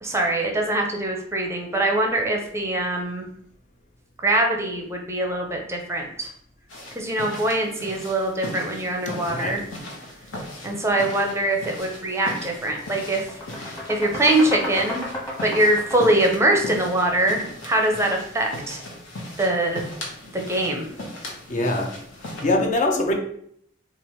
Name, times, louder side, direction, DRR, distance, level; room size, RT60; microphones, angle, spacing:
voice 1, 0.0-3.3 4.2-6.3 6.9-9.6 10.6-13.3 13.9-15.0 15.4-18.8 19.4-19.8 20.3-20.9, right 1 dB, 15° right, 1 dB, 0.6 m, -23 dB
sound 1, 6.7-22.4, left 1 dB, 70° left, 1.0 m, -38 dB
voice 2, 9.3-9.6 21.5-21.9 22.2-23.1, left 1 dB, 40° left, 3 dB, 0.5 m, -23 dB
sound 2, 11.9-12.1 12.5-17.4, equal, 20° left, 1.3 m, -33 dB
3.3 x 2.4 x 4.3 m, 0.68 s
head